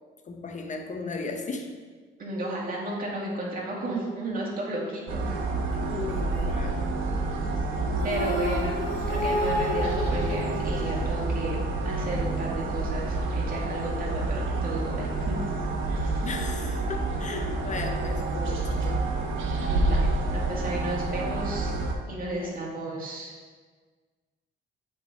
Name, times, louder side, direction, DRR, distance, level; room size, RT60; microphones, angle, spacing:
voice 1, 0.2-1.7 5.9-6.8 16.2-19.0 22.3-22.5, left 4 dB, 40° left, 4 dB, 0.9 m, -36 dB
voice 2, 2.2-5.4 8.0-8.8 9.1-11.6 11.8-15.5 15.9-16.2 19.7-21.7 22.1-23.3, right 1 dB, 45° right, -4 dB, 2.2 m, -33 dB
sound 1, 5.1-21.9, right 2 dB, 80° right, 1.0 m, -28 dB
sound 2, 8.0-11.4, left 1 dB, 70° left, 1.6 m, -30 dB
7.5 x 4.0 x 4.8 m, 1.5 s
cardioid pair, 90°, 20 cm